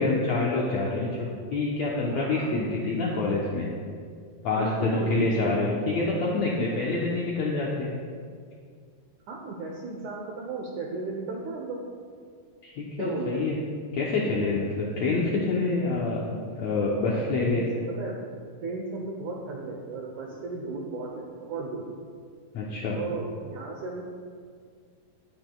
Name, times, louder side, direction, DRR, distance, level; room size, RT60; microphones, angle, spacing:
voice 1, 0.0-3.7 4.4-7.9 12.6-13.6 13.9-17.7 22.5-23.0, left 3 dB, 75° left, -4 dB, 1.6 m, -27 dB
voice 2, 2.1-2.5 4.5-5.8 9.3-11.8 13.0-13.4 17.1-17.7 18.0-18.2 18.6-21.9 22.9-24.0, right 3 dB, 75° right, 0 dB, 1.8 m, -35 dB
19.5 x 8.0 x 2.3 m, 2.1 s
omnidirectional pair, 4.4 m